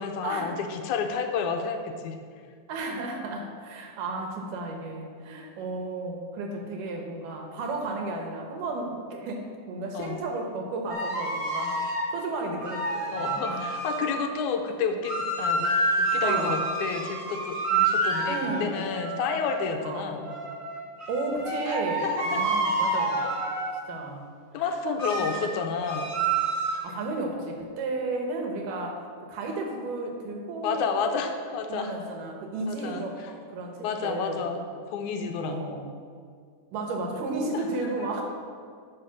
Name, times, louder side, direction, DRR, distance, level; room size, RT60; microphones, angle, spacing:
voice 1, 0.0-2.2 9.9-10.2 13.1-20.3 21.7-21.8 22.0-22.4 24.5-26.1 30.6-31.9 32.7-33.3 33.8-34.6 34.9-35.6 37.5-37.7, left 5 dB, 75° left, 5 dB, 2.0 m, -30 dB
voice 2, 2.7-13.7 16.2-16.7 18.3-18.9 19.8-20.1 21.1-23.2 23.9-24.3 24.5-24.8 25.4-25.6 26.8-30.9 31.7-33.2 33.5-34.5 35.4-35.9 36.7-38.2, right 2 dB, 90° right, 2 dB, 2.7 m, -33 dB
sound 1, 10.9-12.1 12.6-14.2 15.0-19.6 20.2-23.8 25.0-25.5 25.8-26.8, right 2 dB, 40° right, 0.4 m, -28 dB
9.9 x 5.3 x 5.9 m, 2.1 s
omnidirectional pair, 3.7 m